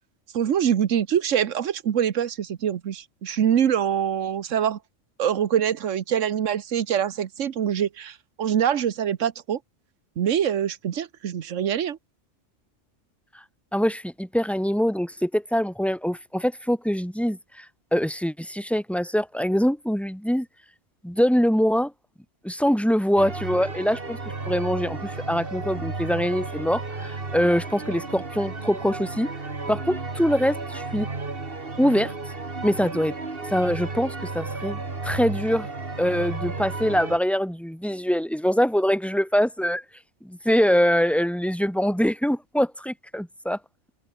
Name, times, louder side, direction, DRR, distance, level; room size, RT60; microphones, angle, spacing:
voice 1, 0.3-4.8 5.2-9.6 10.2-12.0, right 9 dB, 75° right, 1.3 m, -24 dB
voice 2, 13.7-17.7 17.9-20.5 21.0-21.9 22.4-24.2 24.5-29.3 29.7-31.1 31.8-32.1 32.6-33.1 33.5-35.7 36.0-39.8 40.2-43.6, equal, ahead, 2.8 m, -23 dB
sound 1, 23.2-37.2, right 3 dB, 45° right, 2.7 m, -33 dB
omnidirectional pair, 1.3 m